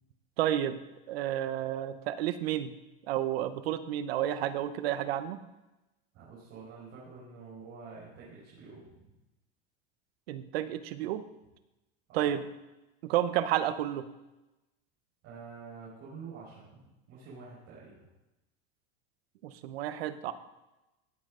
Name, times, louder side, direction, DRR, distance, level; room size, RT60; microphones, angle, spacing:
voice 1, 0.4-0.8 1.1-2.7 3.1-5.4 10.3-11.2 12.1-12.4 13.0-14.0 19.4-20.3, right 12 dB, 80° right, 12 dB, 1.0 m, -31 dB
voice 2, 6.1-9.1 12.1-12.4 15.2-18.1, right 5 dB, 50° right, -7 dB, 4.8 m, -48 dB
17.0 x 7.7 x 3.8 m, 0.99 s
supercardioid pair, 125°, 30 cm